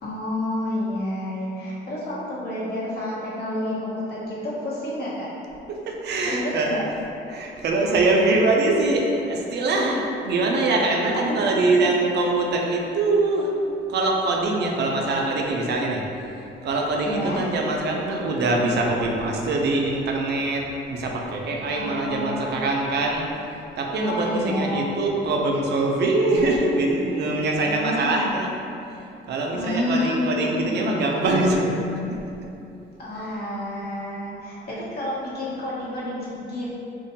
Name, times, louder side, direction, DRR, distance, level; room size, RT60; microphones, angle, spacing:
voice 1, 0.0-5.3 6.2-6.8 11.3-11.7 17.0-17.5 21.7-22.5 24.0-24.9 27.7-28.3 29.5-30.9 33.0-36.8, left 1 dB, 55° left, -7 dB, 0.8 m, -29 dB
voice 2, 5.7-6.8 7.3-13.5 13.9-16.0 16.6-23.3 23.8-28.5 29.3-31.8 33.1-33.3 34.7-34.8, right 2 dB, 60° right, 0 dB, 0.4 m, -23 dB
2.5 x 2.1 x 2.8 m, 2.8 s
cardioid pair, 90°, 20 cm